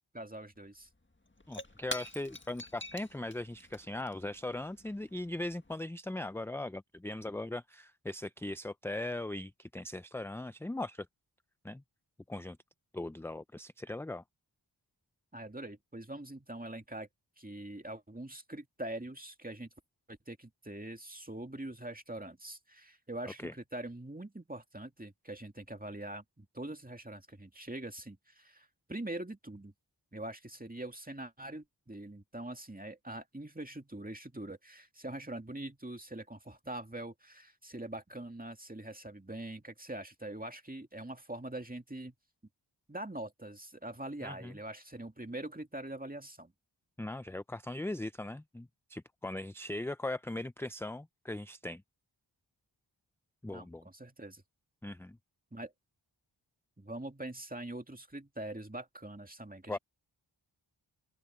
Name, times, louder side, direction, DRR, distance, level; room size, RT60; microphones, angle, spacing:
voice 1, 0.1-0.9 15.3-17.1 17.4-19.7 20.1-29.7 30.1-42.1 42.9-46.5 53.5-54.4 55.5-55.7 56.8-59.8, right 1 dB, 20° right, 2.2 m, -43 dB
Shatter / Crushing, 0.6-0.7 0.9-5.8, left 1 dB, 25° left, 1.8 m, -47 dB
voice 2, 1.5-11.1 11.6-11.8 12.3-12.6 12.9-14.2 23.4-23.5 44.2-44.6 47.0-51.8 53.4-53.8 54.8-55.2 59.7-59.8, left 2 dB, 5° left, 0.3 m, -39 dB
open air
wide cardioid pair, 45°, 47 cm